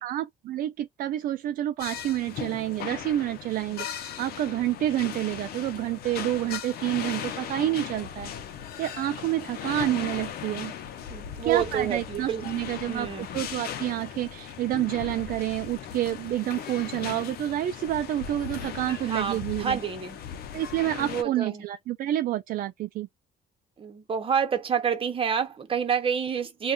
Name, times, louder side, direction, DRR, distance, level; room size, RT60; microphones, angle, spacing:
voice 1, 0.0-8.3 8.8-10.7 11.4-19.8 20.5-23.1, right 13 dB, 55° right, 0.4 m, -29 dB
sound 1, 1.8-21.2, left 9 dB, 65° left, 0.7 m, -38 dB
voice 2, 11.1-12.4 12.9-13.3 19.1-20.2 21.0-21.6 23.8-26.7, right 7 dB, 30° right, 1.0 m, -28 dB
2.5 x 2.3 x 3.6 m
cardioid pair, 110°, 17 cm